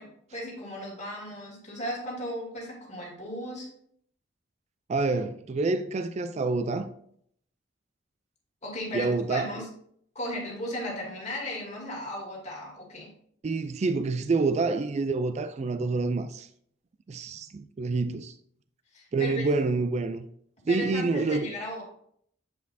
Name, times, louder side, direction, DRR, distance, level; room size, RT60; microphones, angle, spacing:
voice 1, 0.0-3.7 8.6-9.7 10.1-13.1 18.9-19.4 20.7-21.8, equal, 40° left, 2.2 m, -36 dB
voice 2, 4.9-6.9 8.9-9.5 13.4-16.5 17.1-18.3 19.1-20.3 20.7-21.5, right 3 dB, 35° right, 0.3 m, -27 dB
8.1 x 4.8 x 2.7 m
head